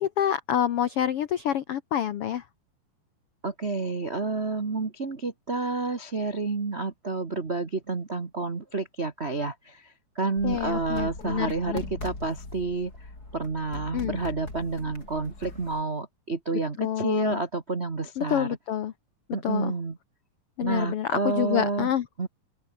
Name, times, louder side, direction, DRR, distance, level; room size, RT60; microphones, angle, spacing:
voice 1, 0.0-2.4 10.4-11.8 13.9-14.2 16.8-17.4 18.2-18.9 19.4-19.7 20.6-22.0, left 10 dB, 80° left, 1.3 m, -27 dB
voice 2, 3.4-12.9 13.3-18.5 19.3-20.0 20.6-21.9 22.2-22.3, right 3 dB, 55° right, 0.7 m, -29 dB
sound 1, 10.4-15.8, left 2 dB, 25° left, 6.6 m, -40 dB
open air
omnidirectional pair, 4.1 m